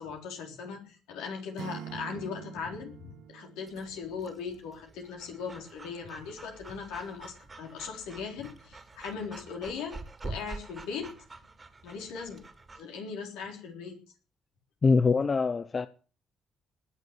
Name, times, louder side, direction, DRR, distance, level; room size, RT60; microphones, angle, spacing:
voice 1, 0.0-10.0 10.2-11.1 11.8-12.5 12.7-14.0, left 5 dB, 75° left, 3.8 m, -39 dB
Acoustic guitar / Strum, 1.6-4.6, right 10 dB, 65° right, 0.9 m, -45 dB
Breathing / Dog, 3.7-12.8, right 3 dB, 30° right, 3.0 m, -46 dB
voice 2, 14.8-15.9, left 4 dB, 40° left, 0.8 m, -24 dB
19.5 x 6.7 x 8.1 m
hypercardioid pair, 50°, 0 cm